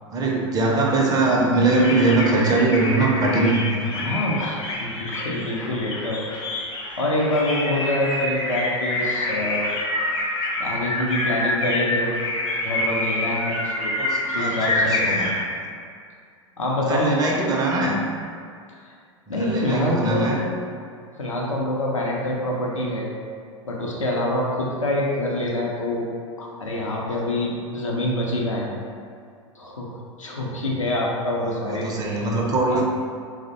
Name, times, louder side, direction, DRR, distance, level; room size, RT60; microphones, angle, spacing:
voice 1, 0.1-4.1 14.0-15.3 16.9-18.0 19.3-20.4 25.5-25.6 31.4-32.8, right 2 dB, 25° right, -2 dB, 0.4 m, -22 dB
sound 1, 1.6-15.5, left 2 dB, 40° left, 0.5 m, -27 dB
voice 2, 4.0-6.2 7.0-9.7 10.6-12.1 12.6-13.9 14.3-15.0 16.6-17.1 18.8-18.9 19.3-20.4 21.2-23.1 23.6-26.1 26.4-28.7 29.6-29.9 30.2-31.9 32.7-32.8, left 1 dB, 90° left, -3 dB, 0.5 m, -25 dB
2.4 x 2.0 x 2.6 m, 2.2 s
figure-of-eight pair, 90°, 16 cm